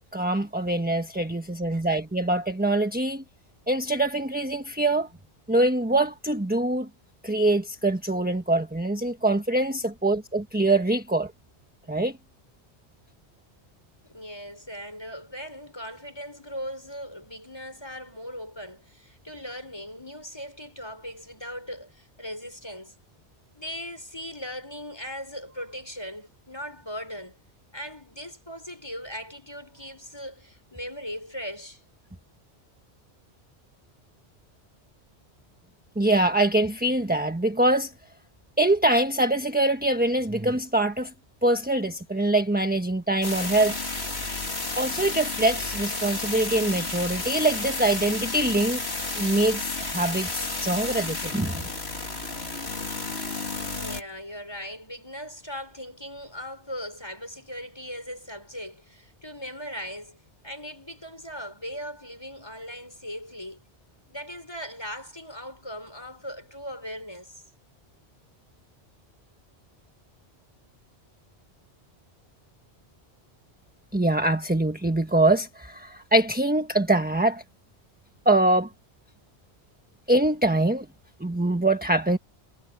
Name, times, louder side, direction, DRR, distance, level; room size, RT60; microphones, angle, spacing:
voice 1, 0.1-3.2 3.7-5.1 5.5-6.9 7.2-11.3 11.9-12.1 36.0-37.9 38.6-41.1 41.4-43.7 44.8-48.8 49.2-51.6 73.9-77.4 78.2-78.7 80.1-80.9 81.2-82.2, right 2 dB, 10° right, 1.2 m, -24 dB
voice 2, 14.1-22.9 23.5-27.4 27.7-31.8 53.7-63.6 64.1-67.4, equal, 25° left, 6.5 m, -39 dB
sound 1, 43.2-54.0, left 3 dB, 65° left, 3.1 m, -32 dB
omnidirectional pair, 1.1 m